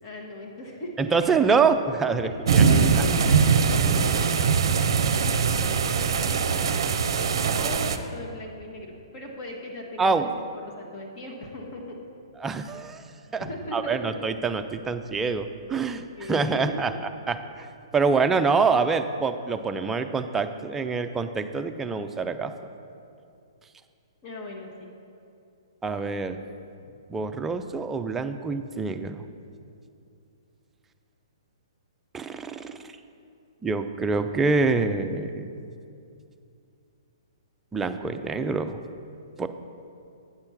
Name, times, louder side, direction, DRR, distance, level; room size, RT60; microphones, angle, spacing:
voice 1, 0.0-1.3 2.1-6.5 7.6-10.3 10.6-12.0 13.4-14.1 15.9-16.8 18.1-18.3 24.2-24.9, left 1 dB, 40° left, 0 dB, 1.2 m, -38 dB
voice 2, 1.0-2.6 10.0-10.3 12.4-13.0 13.3-13.5 13.7-16.0 16.3-16.9 17.3-17.7 17.9-22.5 25.8-26.4 27.1-29.2 32.1-32.9 33.6-35.5 37.7-38.8 39.4-39.5, right 4 dB, 10° right, 8 dB, 0.4 m, -25 dB
sound 1, 2.5-8.0, right 5 dB, 60° right, 0.5 m, -22 dB
8.8 x 4.3 x 7.1 m, 2.5 s
hypercardioid pair, 130°, 3 cm